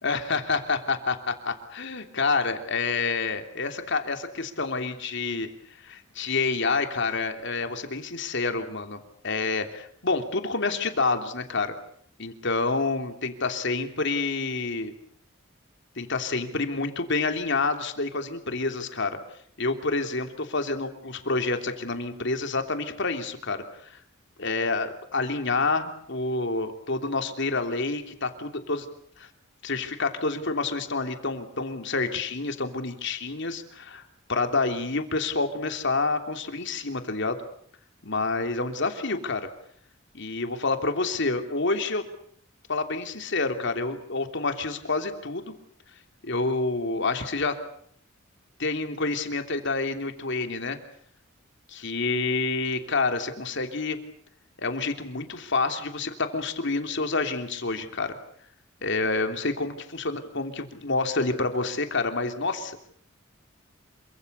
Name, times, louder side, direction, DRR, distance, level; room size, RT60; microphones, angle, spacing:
voice 1, 0.0-5.5 5.8-11.7 12.2-14.9 16.0-19.2 19.6-24.0 24.4-28.9 29.2-29.3 29.6-34.0 34.3-37.4 38.0-39.5 40.1-42.0 42.7-45.5 46.2-47.5 48.6-50.8 51.7-54.0 54.6-58.2 58.8-62.8, left 3 dB, 60° left, 6 dB, 3.2 m, -28 dB
28.0 x 24.5 x 6.8 m, 0.63 s
head